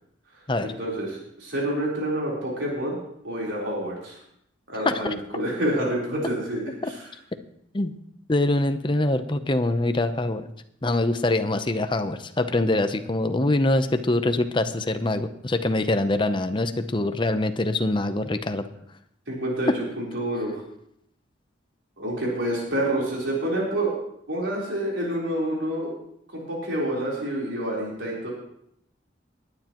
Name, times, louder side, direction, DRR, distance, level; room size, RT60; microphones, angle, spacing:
voice 1, 0.6-3.0 3.2-4.2 4.7-7.0 19.3-19.7 20.0-20.6 22.0-23.9 24.3-25.9 26.3-28.3, right 1 dB, 80° right, -4 dB, 3.8 m, -28 dB
voice 2, 8.3-10.5 10.8-18.7, left 2 dB, 25° left, 9 dB, 0.7 m, -24 dB
19.0 x 9.8 x 3.0 m, 0.73 s
head